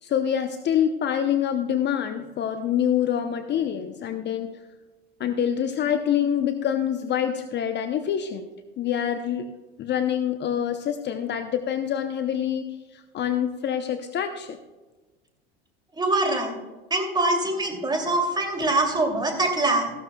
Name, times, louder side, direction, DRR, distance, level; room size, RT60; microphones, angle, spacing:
voice 1, 0.0-4.5 5.2-8.5 8.8-9.5 9.8-12.7 12.9-14.6, left 9 dB, 35° left, 8 dB, 0.8 m, -26 dB
voice 2, 16.0-16.6 16.9-19.9, right 2 dB, 15° right, 3 dB, 2.8 m, -24 dB
14.5 x 12.5 x 2.3 m, 1.2 s
hypercardioid pair, 80°, 30 cm